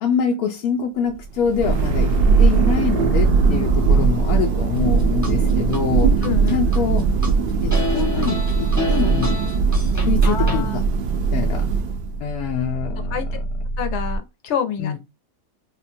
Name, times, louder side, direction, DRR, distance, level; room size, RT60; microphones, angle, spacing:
voice 1, 0.0-6.3 6.5-7.0 7.6-9.4 10.0-10.8 11.3-11.7 12.2-13.4 14.8-15.0, left 7 dB, 90° left, 1.1 m, -25 dB
Thunder, 1.2-12.3, right 5 dB, 85° right, 0.4 m, -19 dB
sound 1, 1.6-14.2, right 2 dB, 50° right, 0.8 m, -29 dB
sound 2, 4.8-5.8 6.2-7.3 7.7-10.6, left 1 dB, 15° left, 0.6 m, -29 dB
voice 2, 6.2-6.8 10.2-10.8 13.1-13.2 13.8-15.0, left 8 dB, 60° left, 0.8 m, -27 dB
3.6 x 2.2 x 2.6 m
omnidirectional pair, 1.5 m